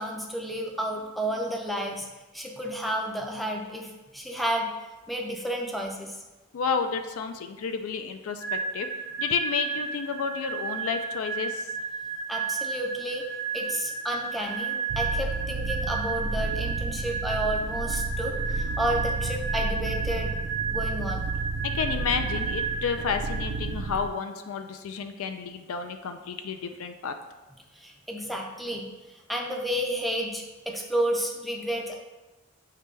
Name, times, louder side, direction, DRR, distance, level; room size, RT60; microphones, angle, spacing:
voice 1, 0.0-2.1 2.3-4.7 5.1-6.1 12.3-13.2 13.5-20.3 20.7-21.4 27.8-31.9, equal, ahead, 0 dB, 0.4 m, -31 dB
voice 2, 6.5-8.9 9.2-11.6 21.6-27.1, left 6 dB, 80° left, 7 dB, 0.4 m, -31 dB
sound 1, 8.4-24.0, right 5 dB, 35° left, 1.1 m, -33 dB
sound 2, 14.9-24.1, right 3 dB, 65° right, 0.3 m, -32 dB
6.6 x 2.2 x 3.2 m, 1.1 s
head